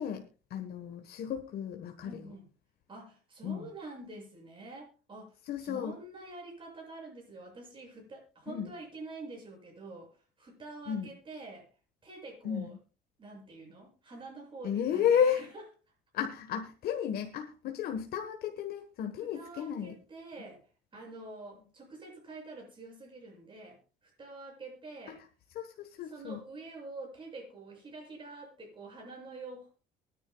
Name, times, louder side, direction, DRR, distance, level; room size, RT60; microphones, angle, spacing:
voice 1, 0.0-2.3 3.4-3.7 5.5-5.9 8.5-8.7 10.9-11.1 12.4-12.7 14.6-15.4 16.1-19.9 25.1-25.2 25.5-26.4, left 8 dB, 65° left, 5 dB, 1.3 m, -33 dB
voice 2, 2.0-2.5 2.9-10.1 10.4-11.7 12.0-12.8 13.2-15.6 19.2-20.7 20.9-25.2 26.1-29.7, right 3 dB, 30° right, -1 dB, 7.1 m, -47 dB
23.5 x 10.0 x 2.3 m, 0.33 s
cardioid pair, 110°, 17 cm